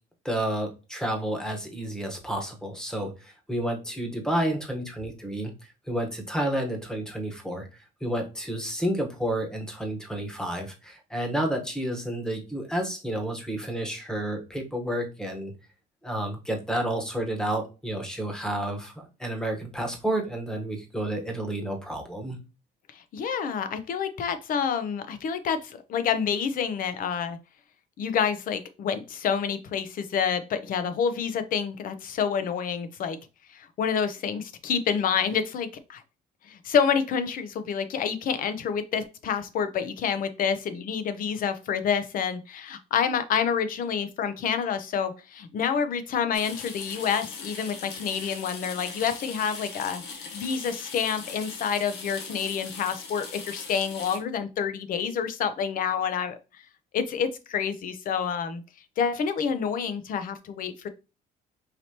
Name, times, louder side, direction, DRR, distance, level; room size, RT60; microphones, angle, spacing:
voice 1, 0.2-5.5 5.9-15.5 16.0-22.4, right 1 dB, 5° left, 3 dB, 1.1 m, -30 dB
voice 2, 22.9-27.4 28.0-33.2 33.5-36.0 36.4-50.0 50.3-56.6 56.9-58.6 59.0-60.9, left 7 dB, 55° left, 10 dB, 0.6 m, -28 dB
sound 1, 46.3-54.2, left 5 dB, 85° left, 1.1 m, -40 dB
4.9 x 2.9 x 2.8 m, 0.30 s
cardioid pair, 110°, 17 cm